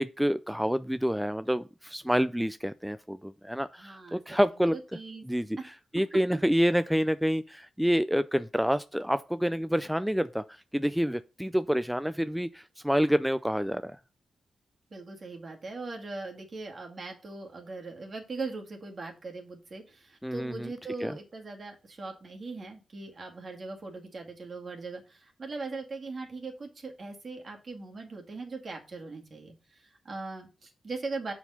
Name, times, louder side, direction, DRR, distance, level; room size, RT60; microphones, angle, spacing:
voice 1, 0.0-4.8 5.2-5.6 5.9-14.0 20.2-20.7 21.0-21.2, equal, ahead, 0.3 m, -28 dB
voice 2, 3.8-4.4 4.7-5.3 5.6-5.7 14.9-31.3, right 3 dB, 50° right, 2.0 m, -40 dB
6.8 x 4.4 x 5.6 m
cardioid pair, 65°, 0 cm